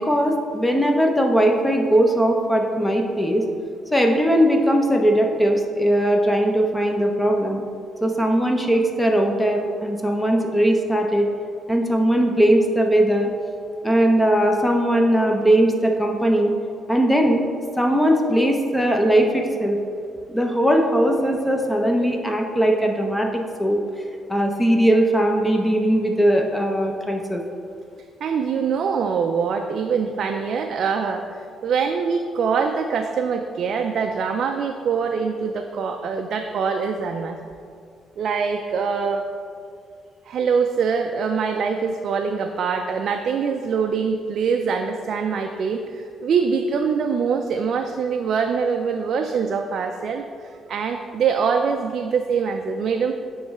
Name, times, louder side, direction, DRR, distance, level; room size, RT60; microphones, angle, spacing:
voice 1, 0.0-3.4 3.9-7.6 8.0-11.3 11.7-13.3 13.8-16.5 16.9-17.5 17.8-19.8 20.3-23.8 24.3-27.4, right 1 dB, 5° left, 2 dB, 0.6 m, -19 dB
voice 2, 28.2-37.4 38.2-39.2 40.2-53.1, right 6 dB, 65° right, 4 dB, 0.3 m, -24 dB
9.4 x 3.1 x 3.6 m, 2.3 s
cardioid pair, 90°, 0 cm